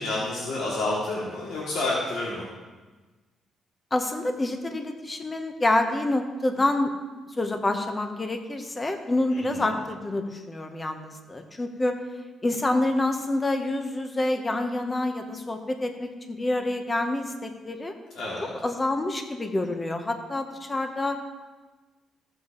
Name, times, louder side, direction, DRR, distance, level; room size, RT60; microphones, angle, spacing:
voice 1, 0.0-2.4 9.3-9.8 18.1-18.5, left 2 dB, 85° left, -6 dB, 2.4 m, -29 dB
voice 2, 3.9-6.9 7.4-11.9 12.4-17.9 18.6-21.2, left 2 dB, 20° left, 5 dB, 0.9 m, -27 dB
15.5 x 7.5 x 3.0 m, 1.3 s
cardioid pair, 115°, 0 cm